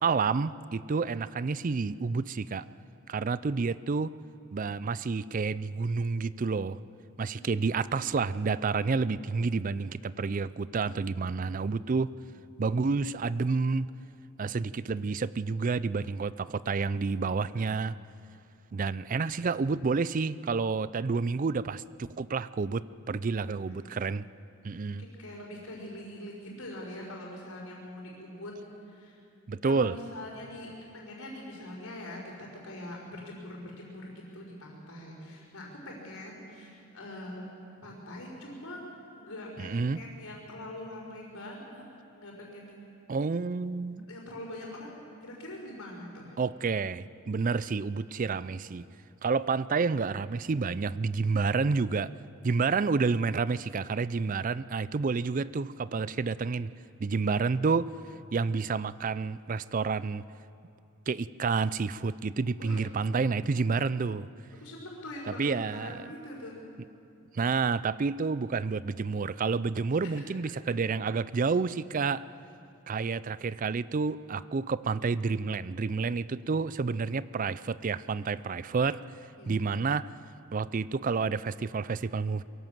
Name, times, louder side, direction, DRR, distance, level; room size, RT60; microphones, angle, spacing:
voice 1, 0.0-2.6 3.1-4.1 4.5-6.8 7.2-12.1 12.6-13.9 14.4-17.9 18.7-24.3 24.6-25.0 29.5-30.0 39.6-40.0 43.1-44.1 46.4-48.9 49.2-52.1 52.4-56.7 57.0-57.9 58.3-60.3 61.1-64.3 65.3-66.0 67.3-72.2 72.9-79.0 79.5-80.1 80.5-82.4, right 4 dB, 40° right, 17 dB, 0.4 m, -29 dB
voice 2, 7.3-7.8 23.5-24.0 24.8-28.5 28.9-29.2 29.6-37.4 37.8-38.8 39.2-41.9 42.2-43.0 44.1-46.4 57.2-57.5 62.6-62.8 64.6-66.6 70.0-70.1 79.4-79.6, left 1 dB, 85° left, -7 dB, 5.5 m, -43 dB
22.5 x 16.5 x 7.5 m, 2.6 s
head